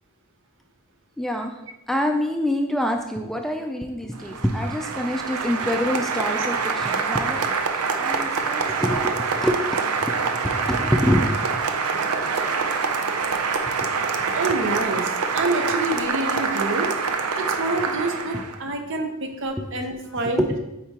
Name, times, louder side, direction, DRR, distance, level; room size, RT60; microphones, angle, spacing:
voice 1, 1.2-1.6 1.9-7.5 7.9-10.2 10.4-11.3 11.7-11.8 12.2-12.3 13.8-13.9 19.6-19.7 20.2-20.6, equal, ahead, 4 dB, 0.3 m, -26 dB
Applause, 4.1-18.6, right 5 dB, 90° right, 0.6 m, -25 dB
voice 2, 14.3-16.9 17.4-20.4, right 2 dB, 60° right, 4 dB, 0.9 m, -27 dB
8.4 x 4.5 x 2.9 m, 0.91 s
head